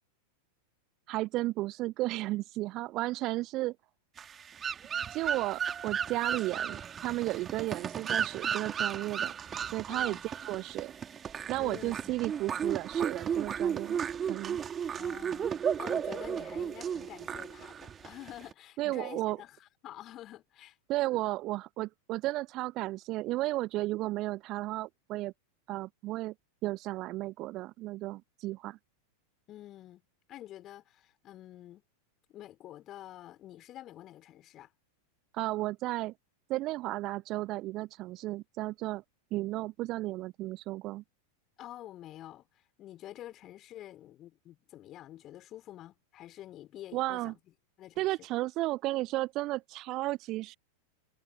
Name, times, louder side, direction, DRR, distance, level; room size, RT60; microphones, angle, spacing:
voice 1, 1.1-3.8 5.1-9.3 9.7-10.9 11.5-14.0 14.3-14.6 18.8-19.4 20.9-25.3 25.7-26.3 26.6-28.8 35.3-36.1 36.5-39.0 39.3-41.0 46.9-47.3 48.0-50.6, right 18 dB, 40° right, 0.4 m, -33 dB
sound 1, 4.2-18.5, right 8 dB, 20° right, 2.5 m, -34 dB
voice 2, 9.9-10.3 11.6-12.1 15.0-20.8 29.5-30.0 30.3-31.8 32.3-34.7 41.6-47.3 47.8-48.1, left 13 dB, 35° left, 2.9 m, -48 dB
figure-of-eight pair, 90°, 0 cm